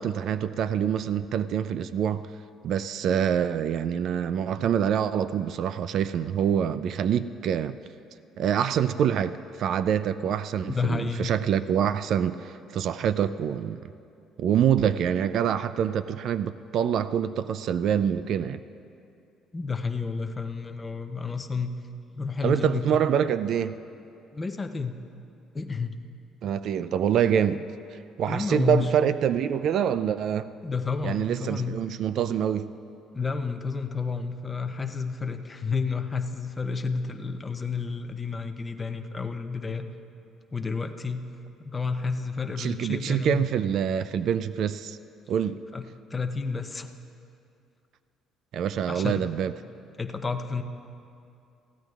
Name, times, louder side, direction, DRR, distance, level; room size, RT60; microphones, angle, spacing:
voice 1, 0.0-2.3 2.6-7.8 8.4-13.8 14.4-18.6 22.4-23.7 26.4-27.7 27.9-30.5 31.0-32.7 42.6-45.0 45.3-45.6 48.5-49.5, right 8 dB, 50° right, 13 dB, 0.3 m, -26 dB
voice 2, 10.7-11.3 19.5-21.7 22.1-22.9 24.3-24.9 25.5-25.9 28.3-28.9 30.6-31.8 33.1-39.9 40.5-41.3 41.6-43.5 45.7-47.0 48.9-49.2 50.0-50.6, left 4 dB, 15° left, 6 dB, 0.6 m, -30 dB
22.0 x 15.0 x 2.4 m, 2.6 s
cardioid pair, 165°, 0 cm